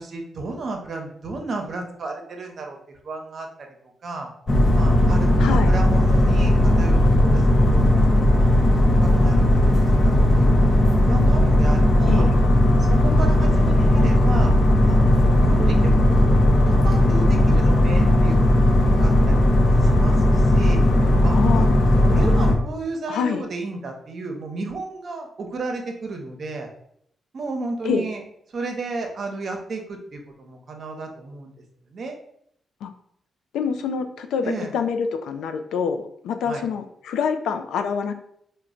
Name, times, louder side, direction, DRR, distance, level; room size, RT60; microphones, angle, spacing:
voice 1, 0.0-2.8 3.0-3.5 4.0-4.3 4.7-8.3 9.0-10.5 11.0-12.3 12.8-14.5 14.9-15.0 15.4-19.4 19.6-20.8 21.2-26.7 27.3-28.2 28.5-31.6 31.9-32.2 34.4-34.7 36.5-36.6, right 3 dB, 60° right, 3 dB, 0.7 m, -33 dB
sound 1, 4.5-22.6, left 1 dB, 45° left, 0.6 m, -17 dB
voice 2, 5.4-5.7 12.1-12.3 21.4-21.7 23.1-23.4 27.8-28.1 32.8-32.9 33.5-38.1, left 6 dB, 85° left, 7 dB, 0.3 m, -26 dB
3.0 x 2.1 x 3.7 m, 0.70 s
cardioid pair, 60°, 0 cm